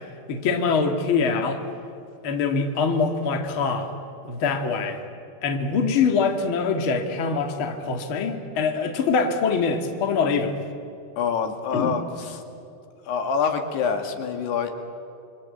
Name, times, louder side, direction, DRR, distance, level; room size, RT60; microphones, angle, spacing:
voice 1, 0.3-1.6 2.2-3.9 4.2-5.0 5.4-10.6 11.7-12.0, left 5 dB, 90° left, 4 dB, 1.1 m, -24 dB
voice 2, 11.2-12.0 13.1-14.7, left 6 dB, 60° left, 5 dB, 3.6 m, -25 dB
28.5 x 23.5 x 8.5 m, 2.5 s
omnidirectional pair, 6.0 m